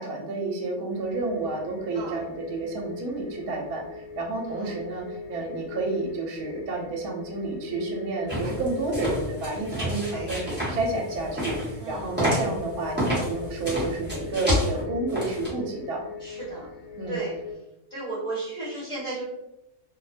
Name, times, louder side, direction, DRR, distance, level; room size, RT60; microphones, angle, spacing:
voice 1, 0.0-16.0 16.9-17.2, right 2 dB, 75° right, 0 dB, 1.1 m, -30 dB
sound 1, 0.9-17.5, left 5 dB, 70° left, 1.0 m, -41 dB
voice 2, 1.9-2.2 4.4-4.7 9.7-10.3 11.8-12.1 16.2-16.6 17.1-17.3 17.9-19.2, right 2 dB, 35° left, -10 dB, 1.0 m, -35 dB
sound 2, 8.3-15.5, equal, 10° right, 0.7 m, -30 dB
2.7 x 2.0 x 2.5 m, 0.88 s
omnidirectional pair, 1.6 m